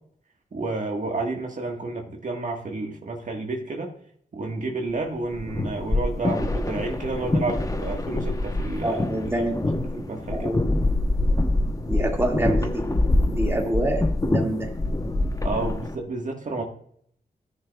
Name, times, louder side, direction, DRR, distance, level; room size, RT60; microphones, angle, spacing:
voice 1, 0.5-3.9 4.3-9.0 9.4-9.5 9.9-10.6 15.4-16.6, right 3 dB, 50° right, 1 dB, 1.5 m, -30 dB
sound 1, 5.2-16.0, left 2 dB, 20° left, 0.9 m, -25 dB
voice 2, 8.8-9.8 10.3-10.7 11.9-12.8 13.2-14.7, right 1 dB, 15° right, 1 dB, 2.0 m, -27 dB
14.0 x 6.4 x 2.3 m, 0.64 s
cardioid pair, 70°, 16 cm